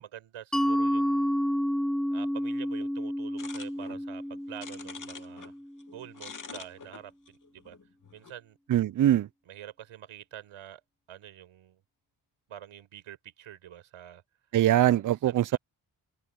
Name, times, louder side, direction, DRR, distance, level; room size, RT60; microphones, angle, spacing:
voice 1, 0.0-1.4 2.1-5.5 5.9-7.8 8.1-8.6 9.5-10.8 11.1-11.8 12.5-14.2 15.2-15.6, right 11 dB, 90° right, 5.2 m, -46 dB
Mallet percussion, 0.5-5.9, equal, ahead, 0.9 m, -30 dB
sound 1, 3.4-5.5 5.8-8.3, left 5 dB, 40° left, 2.4 m, -46 dB
voice 2, 8.7-9.3 14.5-15.6, right 12 dB, 40° right, 0.5 m, -22 dB
open air
cardioid pair, 95°, 49 cm